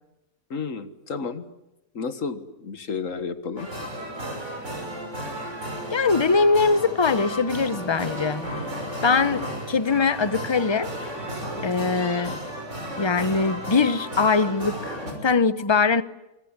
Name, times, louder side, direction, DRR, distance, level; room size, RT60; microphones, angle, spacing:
voice 1, 0.5-1.4 1.9-3.7, left 5 dB, 60° left, 1.9 m, -31 dB
sound 1, 3.6-15.1, equal, 50° right, 6.1 m, -34 dB
voice 2, 5.9-8.5 9.0-10.9 11.6-12.3 13.0-16.0, left 4 dB, 20° left, 0.8 m, -22 dB
24.5 x 24.0 x 9.9 m
omnidirectional pair, 1.6 m